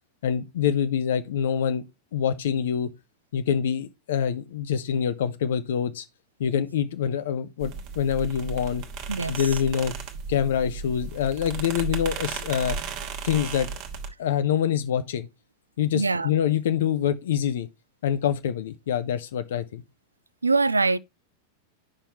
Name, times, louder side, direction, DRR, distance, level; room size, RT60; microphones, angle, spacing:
voice 1, 0.2-1.8 2.1-2.9 3.3-6.0 6.4-8.8 9.3-9.9 10.3-12.8 13.2-13.7 14.2-15.3 15.8-17.7 18.0-19.8, left 8 dB, 60° left, 0.6 m, -25 dB
Creaking Wooden Floor, 7.6-14.1, right 5 dB, 40° right, 1.1 m, -35 dB
voice 2, 9.1-9.6 15.9-16.3 20.4-21.0, right 3 dB, 80° right, 0.3 m, -23 dB
8.6 x 5.6 x 2.9 m
figure-of-eight pair, 90°, 0 cm